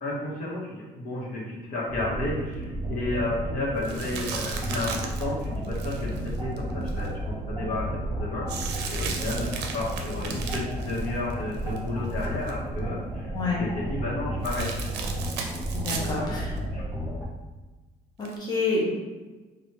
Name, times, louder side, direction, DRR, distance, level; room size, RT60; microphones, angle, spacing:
voice 1, 0.0-13.3 13.6-14.7 15.9-16.3 16.7-16.8, left 2 dB, 55° left, -6 dB, 1.3 m, -32 dB
sound 1, 1.9-17.2, right 1 dB, 10° right, 0.7 m, -32 dB
sound 2, 3.8-7.1 8.5-11.8 12.1-12.5 14.4-16.2 16.6-16.7 18.2-18.4, right 5 dB, 85° right, 0.5 m, -36 dB
voice 2, 13.3-13.6 15.7-16.5 18.2-18.9, left 3 dB, 25° left, -4 dB, 0.8 m, -28 dB
3.1 x 2.5 x 3.0 m, 1.2 s
cardioid pair, 110°, 17 cm